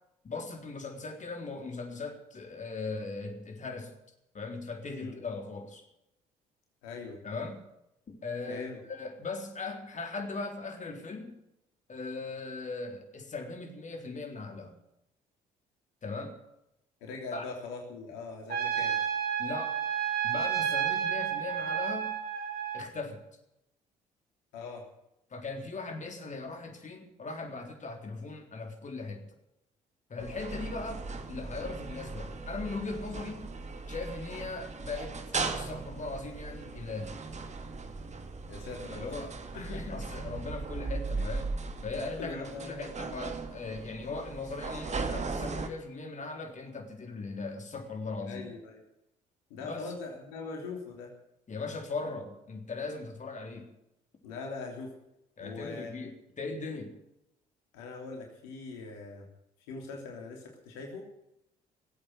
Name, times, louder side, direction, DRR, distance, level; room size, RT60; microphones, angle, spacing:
voice 1, 0.2-3.9 4.3-5.8 7.2-7.6 8.1-11.3 11.9-14.7 16.0-16.4 17.3-17.5 19.4-19.8 20.2-22.2 22.7-23.2 25.3-29.3 30.1-33.5 33.9-35.2 35.5-37.2 38.9-41.5 41.8-48.5 49.6-49.9 51.5-53.7 55.4-57.0, left 3 dB, 40° left, 4 dB, 3.7 m, -39 dB
voice 2, 6.8-7.2 8.5-8.8 17.0-19.0 24.5-24.8 38.5-39.1 39.6-39.8 41.2-41.3 41.8-42.9 48.2-48.8 49.5-51.1 54.2-54.9 55.4-56.0 57.7-59.3 59.7-61.0, left 3 dB, 75° left, 1 dB, 3.3 m, -41 dB
Trumpet, 18.5-22.9, right 9 dB, 50° right, 3.8 m, -31 dB
sound 1, 30.2-45.7, right 4 dB, 35° right, 2.3 m, -38 dB
18.5 x 8.7 x 8.0 m, 0.82 s
hypercardioid pair, 55°, 20 cm